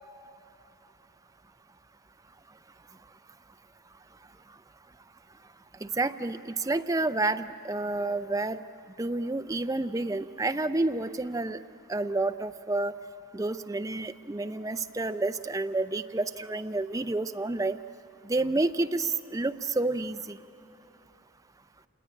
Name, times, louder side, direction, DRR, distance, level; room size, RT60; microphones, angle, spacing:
voice 1, 5.8-8.6 9.0-11.6 11.9-12.9 13.3-17.8 18.3-20.4, right 2 dB, 15° right, 10 dB, 0.5 m, -29 dB
26.5 x 20.0 x 9.7 m, 2.8 s
head